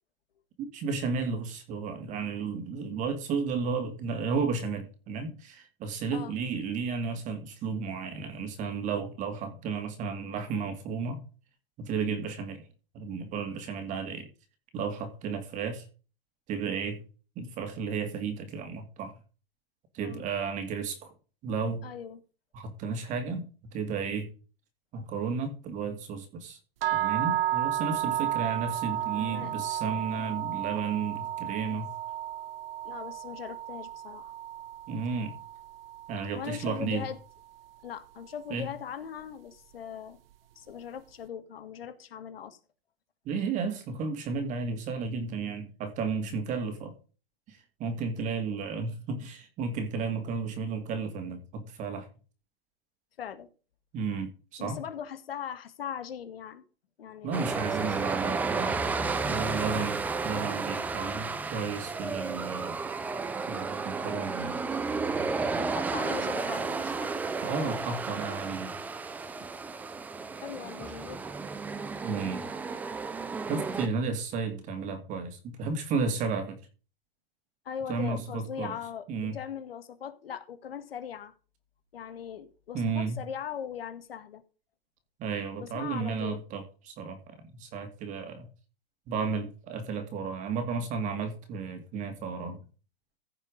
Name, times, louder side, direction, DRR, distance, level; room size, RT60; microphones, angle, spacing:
voice 1, 0.6-11.2 11.8-12.7 12.9-14.3 14.7-15.9 16.5-17.0 17.4-19.1 19.9-21.1 21.4-21.9 22.5-23.5 23.7-24.3 24.9-26.6 26.9-31.9 34.9-35.4 36.1-37.1 38.5-38.7 43.2-46.9 47.5-52.1 53.9-54.8 57.2-58.9 59.3-62.8 63.5-64.6 67.4-68.8 72.0-72.4 73.5-76.6 77.9-78.7 79.1-79.4 82.7-83.2 85.2-88.5 89.1-92.6, right 5 dB, 25° right, 2.4 m, -33 dB
voice 2, 21.8-22.2 29.1-29.6 32.8-34.3 36.4-37.2 37.8-40.2 40.6-42.6 53.2-53.5 54.6-56.6 57.0-57.5 57.8-57.9 65.6-67.2 70.4-71.3 77.7-81.3 81.9-84.4 85.6-86.4, left 8 dB, 80° left, 2.0 m, -40 dB
sound 1, 26.8-36.9, right 12 dB, 80° right, 0.5 m, -33 dB
Waves of Magic, 57.3-73.9, right 4 dB, 5° right, 0.5 m, -32 dB
15.5 x 5.4 x 5.1 m
hypercardioid pair, 150°, 29 cm